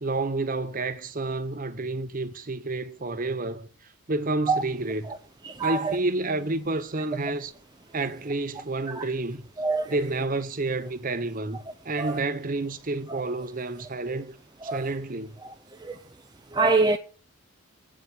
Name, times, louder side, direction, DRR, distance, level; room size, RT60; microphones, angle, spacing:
voice 1, 0.0-3.7 4.1-5.1 5.6-7.5 7.9-9.4 9.9-14.4 14.7-15.4, right 2 dB, 35° right, 0.8 m, -29 dB
voice 2, 5.4-6.0 8.9-9.1 9.6-10.0 12.0-12.2 13.1-13.2 14.6-14.9 15.8-16.0 16.5-17.0, right 3 dB, 20° right, 0.5 m, -25 dB
8.6 x 5.6 x 7.7 m
head